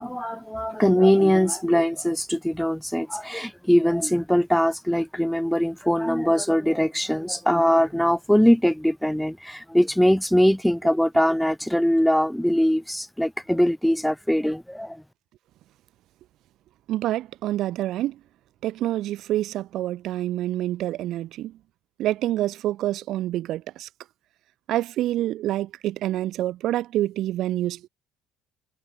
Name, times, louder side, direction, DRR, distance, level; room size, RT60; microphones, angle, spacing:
voice 1, 0.0-15.0, equal, ahead, 1.2 m, -21 dB
voice 2, 16.9-18.2 18.6-21.5 22.0-23.9 24.7-27.9, right 14 dB, 55° right, 1.3 m, -27 dB
cardioid pair, 150°, 0 cm